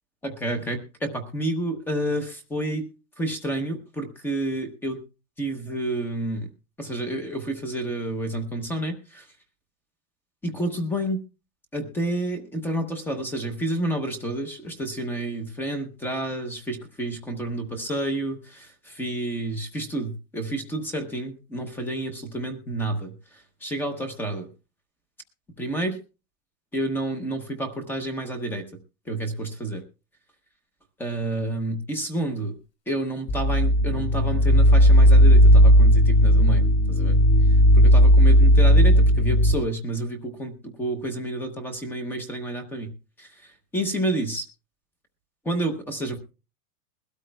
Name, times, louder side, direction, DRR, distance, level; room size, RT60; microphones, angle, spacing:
voice 1, 0.2-2.9 3.2-5.0 5.4-6.5 6.8-9.2 10.4-11.2 11.7-23.1 23.6-24.5 25.6-26.0 26.7-28.7 29.1-29.8 31.0-32.6 32.9-37.2 37.7-42.9 43.2-43.3 43.7-44.4 45.4-46.2, right 1 dB, 5° left, 7 dB, 0.8 m, -29 dB
sound 1, 33.3-39.5, equal, 35° left, 4.2 m, -15 dB
21.5 x 13.0 x 2.2 m, 0.32 s
supercardioid pair, 175°, 46 cm